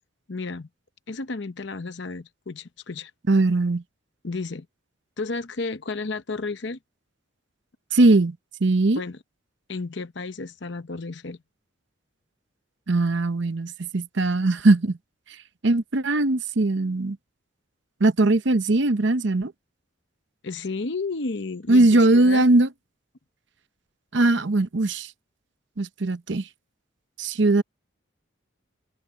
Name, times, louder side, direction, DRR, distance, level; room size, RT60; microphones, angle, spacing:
voice 1, 0.3-0.7 1.1-3.1 4.2-4.7 5.2-6.8 9.0-9.2 9.7-11.4 20.4-22.4, left 3 dB, 60° left, 0.8 m, -32 dB
voice 2, 3.3-3.8 7.9-8.4 8.6-9.0 12.9-15.0 15.6-17.2 18.0-19.5 21.7-22.7 24.1-25.1 25.8-26.5 27.2-27.6, right 2 dB, 60° right, 0.8 m, -20 dB
head